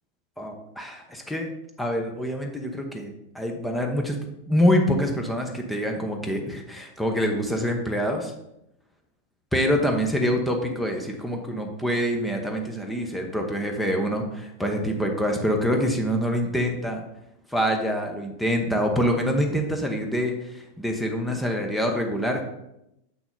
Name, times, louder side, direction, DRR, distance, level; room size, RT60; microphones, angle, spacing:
voice 1, 0.4-1.5 1.8-4.2 4.5-8.3 9.5-17.0 17.5-22.4, equal, 5° left, 3 dB, 1.0 m, -25 dB
7.0 x 6.0 x 3.8 m, 0.84 s
figure-of-eight pair, 90°, 0 cm